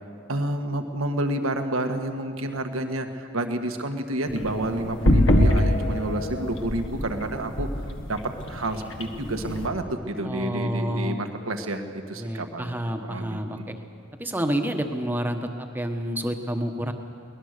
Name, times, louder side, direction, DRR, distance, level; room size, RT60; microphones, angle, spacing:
voice 1, 0.3-7.7 8.1-8.2 8.5-13.8, right 1 dB, 85° right, 6 dB, 1.6 m, -29 dB
sound 1, 4.3-9.7, left 1 dB, 65° left, 1.6 m, -24 dB
voice 2, 10.2-11.2 12.1-13.7 14.2-16.9, equal, 10° right, 5 dB, 1.2 m, -29 dB
23.0 x 19.0 x 6.7 m, 2.4 s
head